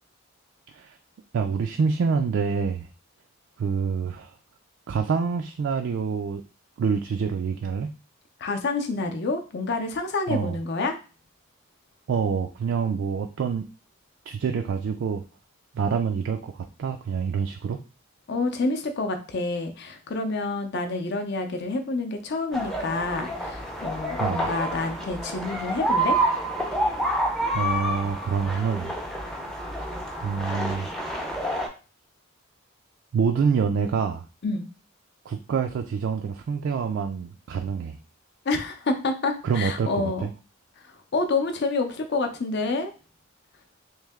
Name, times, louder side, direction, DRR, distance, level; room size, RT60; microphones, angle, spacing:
voice 1, 1.3-2.9 3.6-4.4 4.9-6.4 6.8-7.9 10.3-10.6 12.1-13.6 14.3-15.2 15.7-17.8 24.2-24.5 27.5-28.9 30.2-30.9 33.1-34.3 35.3-38.0 39.4-40.3, right 6 dB, 60° right, 5 dB, 0.3 m, -26 dB
voice 2, 8.4-10.9 18.3-26.2 34.4-34.7 38.4-40.3 40.8-42.9, left 3 dB, 55° left, 6 dB, 0.6 m, -28 dB
sound 1, 22.5-31.7, right 1 dB, ahead, 0.5 m, -28 dB
3.2 x 2.7 x 3.5 m, 0.35 s
head